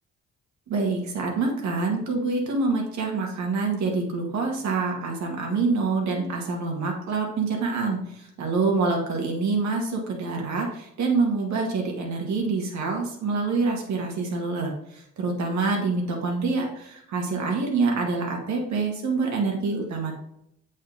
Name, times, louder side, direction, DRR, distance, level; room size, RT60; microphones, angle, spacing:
voice 1, 0.7-8.0 8.4-20.1, right 4 dB, 65° right, 1 dB, 1.7 m, -26 dB
8.2 x 4.2 x 4.0 m, 0.74 s
cardioid pair, 90°, 30 cm